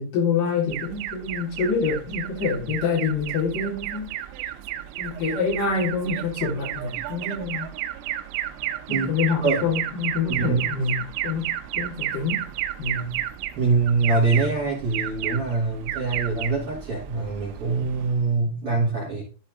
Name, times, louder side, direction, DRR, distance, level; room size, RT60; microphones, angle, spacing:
voice 1, 0.0-4.1 5.0-7.7 8.9-12.5 12.8-13.2, left 5 dB, 55° left, -4 dB, 3.9 m, -26 dB
Alarm, 0.7-18.3, right 12 dB, 90° right, 2.8 m, -32 dB
voice 2, 10.3-10.6 13.6-19.2, right 4 dB, 40° right, -4 dB, 2.8 m, -24 dB
12.5 x 4.3 x 3.8 m, 0.35 s
omnidirectional pair, 5.0 m